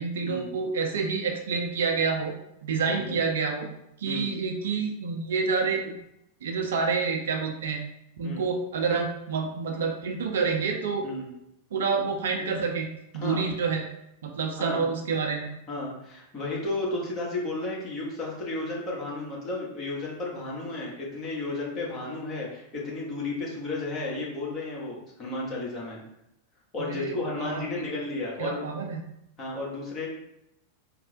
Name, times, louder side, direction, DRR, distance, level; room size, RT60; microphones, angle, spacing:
voice 1, 0.0-2.3 2.6-3.7 4.0-6.0 6.4-7.8 8.2-11.1 11.7-12.9 13.1-13.8 14.2-15.5 26.8-27.8 28.4-29.0, right 5 dB, 60° right, 2 dB, 0.5 m, -28 dB
voice 2, 15.7-26.0 26.7-28.7 29.4-30.1, left 2 dB, 30° left, -4 dB, 1.1 m, -33 dB
4.2 x 2.0 x 2.7 m, 0.82 s
figure-of-eight pair, 90°, 0 cm